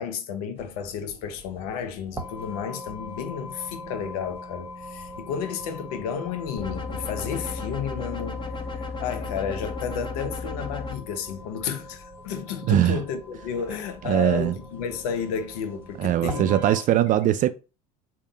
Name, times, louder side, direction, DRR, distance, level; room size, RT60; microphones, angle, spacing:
voice 1, 0.0-16.6 17.1-17.2, left 7 dB, 75° left, 0.7 m, -32 dB
sound 1, 0.6-16.8, equal, 10° right, 1.0 m, -42 dB
sound 2, 6.6-11.0, left 4 dB, 25° left, 0.7 m, -34 dB
voice 2, 12.7-13.0 14.0-14.6 16.0-17.5, right 12 dB, 45° right, 0.4 m, -21 dB
3.7 x 2.2 x 3.8 m
supercardioid pair, 90°, 19 cm